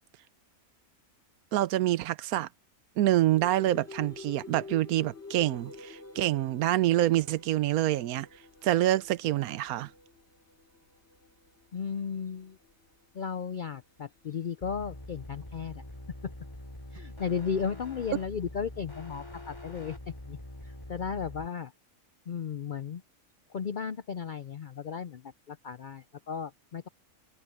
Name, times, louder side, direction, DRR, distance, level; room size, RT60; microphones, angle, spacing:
voice 1, 1.5-2.5 3.0-8.3 8.6-9.9, right 14 dB, 85° right, 1.1 m, -26 dB
sound 1, 3.3-18.9 19.3-20.8, left 3 dB, 50° left, 4.2 m, -50 dB
voice 2, 11.7-12.6 13.1-15.8 16.2-16.3 16.9-20.0 20.2-20.4 20.6-21.7 22.3-23.0 23.5-26.9, left 6 dB, 65° left, 0.4 m, -35 dB
sound 2, 14.6-21.5, left 1 dB, 20° left, 2.7 m, -44 dB
omnidirectional pair, 1.5 m